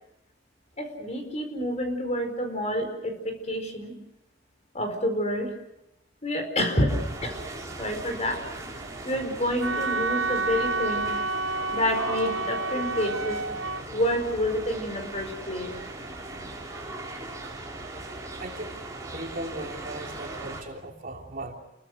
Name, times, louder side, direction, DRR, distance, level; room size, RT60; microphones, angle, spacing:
voice 1, 0.8-3.9 4.7-5.5 6.2-7.4 7.8-8.4 9.0-11.1 11.7-13.4 13.9-15.7, equal, 35° left, 6 dB, 4.8 m, -28 dB
sound 1, 6.9-20.6, right 2 dB, 15° right, 4.8 m, -39 dB
Wind instrument woodwind instrument, 9.6-13.8, right 3 dB, 70° right, 0.8 m, -29 dB
voice 2, 18.4-18.8 19.1-21.5, right 2 dB, 45° right, 1 dB, 3.3 m, -37 dB
29.5 x 22.5 x 6.5 m, 0.86 s
head